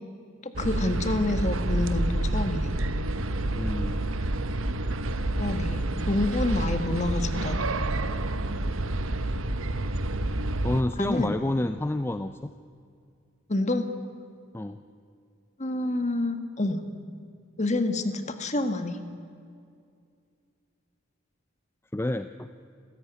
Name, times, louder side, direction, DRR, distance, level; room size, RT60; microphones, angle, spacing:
voice 1, 0.4-2.7 5.4-7.6 11.0-11.4 13.5-13.9 15.6-16.8 17.6-19.0, left 2 dB, 35° left, 8 dB, 1.6 m, -28 dB
sound 1, 0.5-10.8, right 1 dB, 80° right, 1.2 m, -28 dB
voice 2, 3.5-4.0 10.6-12.5 14.5-14.8 21.9-22.5, left 1 dB, 10° left, 9 dB, 0.5 m, -29 dB
27.5 x 14.5 x 9.6 m, 2.4 s
head